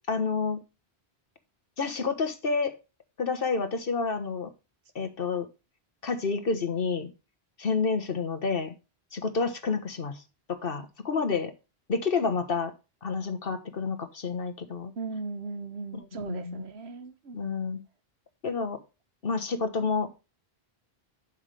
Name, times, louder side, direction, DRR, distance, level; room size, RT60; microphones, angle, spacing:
voice 1, 0.1-0.6 1.8-2.7 3.2-4.5 4.9-5.5 6.0-7.1 7.6-8.7 9.1-10.2 10.5-11.5 11.9-12.7 13.0-14.9 15.9-16.6 17.3-17.8 18.4-18.8 19.2-20.1, left 4 dB, 60° left, 1.4 m, -29 dB
voice 2, 15.0-17.4, right 4 dB, 80° right, 1.5 m, -37 dB
11.5 x 5.5 x 3.4 m
omnidirectional pair, 1.1 m